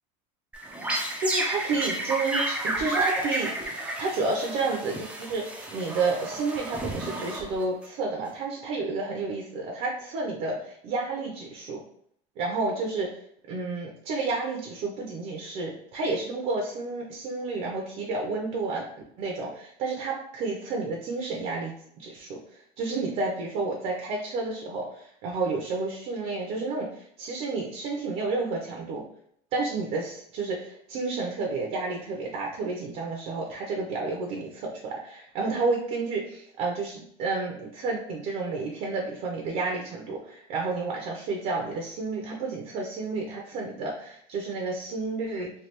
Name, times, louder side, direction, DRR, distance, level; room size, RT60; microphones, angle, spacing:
sound 1, 0.5-7.8, right 2 dB, 5° right, 0.4 m, -31 dB
voice 1, 1.2-5.5 5.7-11.8 12.4-13.1 13.5-18.8 19.2-29.0 29.5-45.5, right 3 dB, 50° right, 0 dB, 0.6 m, -31 dB
3.3 x 2.3 x 2.9 m, 0.67 s
cardioid pair, 145°, 17 cm